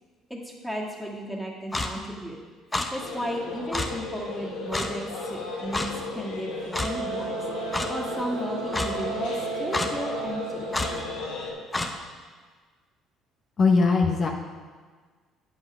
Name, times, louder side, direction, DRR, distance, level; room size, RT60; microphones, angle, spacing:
voice 1, 0.3-2.4 2.9-7.4 7.9-10.7, equal, ahead, -2 dB, 2.0 m, -34 dB
Clock, 1.7-1.9 2.7-2.9 3.7-3.9 4.7-4.9 5.7-5.9 6.7-6.9 7.7-7.9 8.7-8.9 9.7-9.9 10.7-10.9 11.7-11.9, left 2 dB, 20° left, 1.0 m, -27 dB
sound 1, 3.0-11.5, left 3 dB, 80° left, 1.9 m, -35 dB
Wind instrument woodwind instrument, 6.8-11.4, right 8 dB, 80° right, 1.4 m, -36 dB
voice 2, 13.6-14.3, left 4 dB, 45° left, 0 dB, 0.9 m, -20 dB
8.7 x 5.6 x 6.1 m, 1.5 s
supercardioid pair, 70°, 0 cm